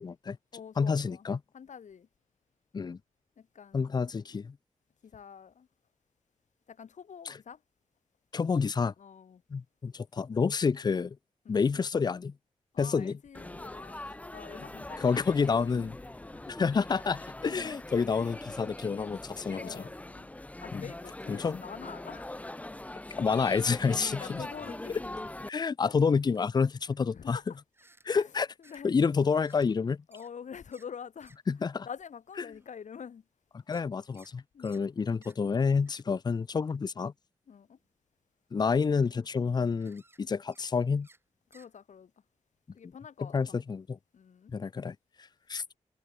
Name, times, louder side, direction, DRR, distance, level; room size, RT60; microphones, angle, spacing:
voice 1, 0.0-0.4 0.8-1.4 2.7-3.0 3.7-4.6 7.3-7.4 8.3-8.9 9.5-11.2 11.5-12.3 12.8-13.2 15.0-16.0 16.5-19.8 20.7-20.9 21.3-21.6 23.1-24.4 25.5-27.4 28.0-28.5 28.8-30.0 31.5-31.9 32.4-32.5 33.7-37.1 38.5-41.1 43.2-44.0 44.5-45.0 45.5-45.6, left 5 dB, 35° left, 0.5 m, -29 dB
voice 2, 0.5-1.3 1.5-2.1 3.4-3.9 5.0-5.7 6.7-7.6 9.0-9.4 11.4-11.6 12.7-15.2 15.5-15.7 16.3-16.6 17.5-17.8 19.5-20.3 20.6-22.3 24.1-25.0 27.2-27.4 28.1-28.3 28.6-28.9 30.1-31.3 31.8-33.2 34.5-34.7 37.5-37.8 41.5-42.1 42.7-43.6 44.1-44.5, left 7 dB, 90° left, 4.5 m, -46 dB
Laughter / Chatter / Crowd, 13.3-25.5, left 1 dB, 10° left, 1.3 m, -42 dB
sound 1, 25.0-25.1 25.7-26.5 27.7-28.1 28.6-28.8 29.4-29.7 30.1-30.3 30.7-30.9 31.2-31.4 31.8-31.9 32.5-32.8 33.7-34.3 34.6-34.8 35.2-35.4 35.9-36.0 36.7-36.8 37.6-37.9 38.5-38.6 38.8-39.2 39.8-40.2 40.5-40.7 41.0-41.2 41.5-41.7, right 2 dB, 20° right, 6.4 m, -62 dB
wide cardioid pair, 175°, 12 cm